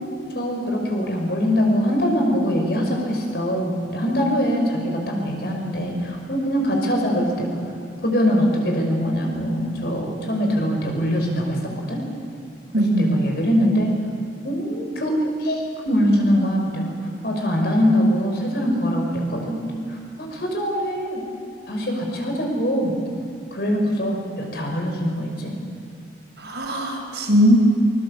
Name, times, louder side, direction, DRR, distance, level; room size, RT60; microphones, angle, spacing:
voice 1, 0.0-7.6 8.0-11.6 11.9-12.0 12.8-13.9 14.4-16.9 17.2-19.0 19.3-21.2 21.7-22.9 23.5-25.5, equal, 60° left, 1 dB, 5.5 m, -23 dB
voice 2, 12.7-13.1 26.4-27.6, equal, 70° right, 0 dB, 5.3 m, -19 dB
24.0 x 21.5 x 7.2 m, 2.4 s
head